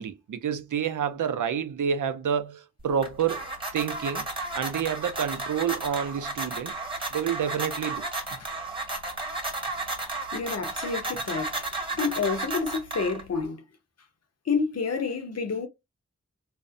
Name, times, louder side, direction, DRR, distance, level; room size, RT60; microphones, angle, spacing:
voice 1, 0.0-4.3 4.5-6.7 7.1-8.0, right 8 dB, 85° right, 0.5 m, -29 dB
sound 1, 2.8-13.4, right 2 dB, 15° right, 1.1 m, -33 dB
voice 2, 10.3-11.6 11.9-13.6 14.5-15.7, left 5 dB, 55° left, 0.7 m, -29 dB
2.6 x 2.0 x 2.5 m
wide cardioid pair, 55°, 30 cm